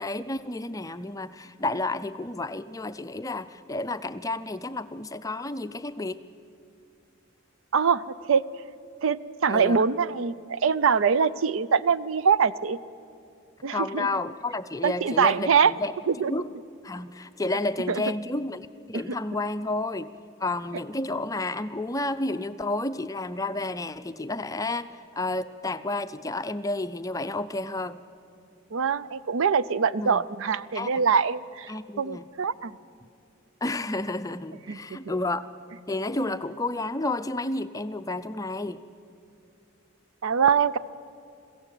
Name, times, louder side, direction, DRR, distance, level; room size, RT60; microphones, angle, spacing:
voice 1, 0.0-6.2 9.5-9.9 13.7-15.9 16.3-16.5 16.8-20.1 20.4-28.0 30.0-30.2 30.7-31.0 31.7-32.3 33.6-35.4 35.9-38.8, left 2 dB, 15° left, 10 dB, 0.5 m, -31 dB
voice 2, 7.7-8.4 9.0-12.8 13.6-14.1 14.8-15.7 16.1-16.3 17.9-18.0 18.9-19.0 28.7-32.8 34.7-34.8 40.2-40.8, right 6 dB, 65° right, 17 dB, 0.5 m, -23 dB
21.5 x 15.5 x 9.0 m, 2.5 s
head